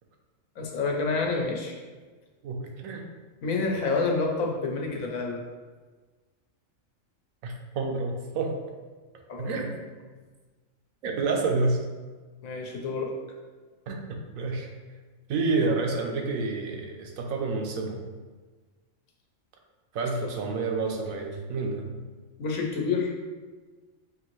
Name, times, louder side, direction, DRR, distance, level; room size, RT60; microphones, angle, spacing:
voice 1, 0.6-1.7 3.4-5.4 9.3-9.7 12.4-13.1 22.4-23.1, left 4 dB, 90° left, 0 dB, 1.2 m, -28 dB
voice 2, 2.4-3.0 7.4-8.6 9.4-9.7 11.0-11.8 13.9-14.7 15.3-18.0 19.9-21.9, right 3 dB, 85° right, 2 dB, 1.1 m, -29 dB
5.7 x 2.6 x 3.0 m, 1.4 s
omnidirectional pair, 1.4 m